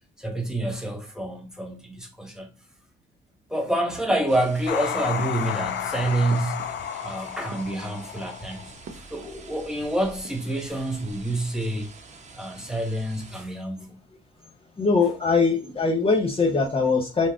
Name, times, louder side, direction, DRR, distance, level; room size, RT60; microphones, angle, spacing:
voice 1, 0.2-2.5 3.5-6.6 7.0-11.9 12.3-14.0, right 1 dB, 5° right, 1.4 m, -28 dB
sound 1, 4.3-13.5, right 3 dB, 35° right, 1.0 m, -47 dB
sound 2, 4.7-8.9, left 9 dB, 65° left, 0.5 m, -32 dB
sound 3, 6.3-7.1 7.4-8.2 8.8-9.5 9.7-9.8 10.1-10.8, right 4 dB, 65° right, 0.8 m, -45 dB
voice 2, 14.8-17.3, left 4 dB, 30° left, 0.8 m, -22 dB
5.5 x 2.5 x 3.7 m
cardioid pair, 90°, 20 cm